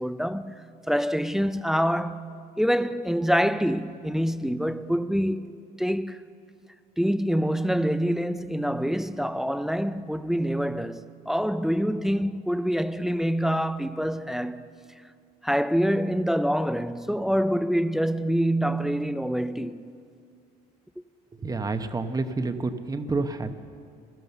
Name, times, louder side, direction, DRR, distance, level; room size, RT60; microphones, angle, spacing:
voice 1, 0.0-5.5 5.8-6.2 7.0-14.7 15.4-19.9, equal, ahead, 0.4 m, -26 dB
voice 2, 21.4-23.5, right 3 dB, 20° right, 0.8 m, -29 dB
15.0 x 12.5 x 6.9 m
cardioid pair, 110°, 17 cm